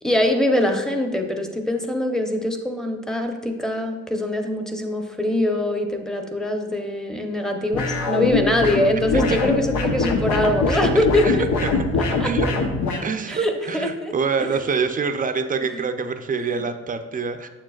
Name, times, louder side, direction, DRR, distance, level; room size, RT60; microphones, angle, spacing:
voice 1, 0.0-11.5 12.2-12.3 13.3-14.1 14.4-14.5 15.7-15.8 16.5-16.6, left 1 dB, ahead, 3 dB, 0.8 m, -23 dB
sound 1, 7.7-13.0, left 3 dB, 75° left, 1.0 m, -23 dB
voice 2, 11.2-11.7 12.2-12.5 13.0-17.5, right 5 dB, 25° right, 8 dB, 0.6 m, -26 dB
7.6 x 6.8 x 2.4 m, 1.3 s
cardioid pair, 90°, 30 cm